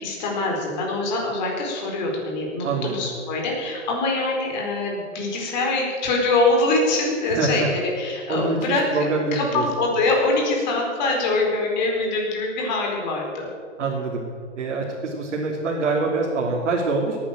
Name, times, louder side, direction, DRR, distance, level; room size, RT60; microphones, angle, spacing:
voice 1, 0.0-9.0 9.3-13.5, left 2 dB, 40° left, 0 dB, 4.5 m, -24 dB
voice 2, 2.6-3.1 7.2-7.7 8.3-9.7 13.8-14.2 14.6-17.2, right 3 dB, 85° right, -2 dB, 3.1 m, -25 dB
18.0 x 9.9 x 7.6 m, 2.1 s
hypercardioid pair, 165°, 36 cm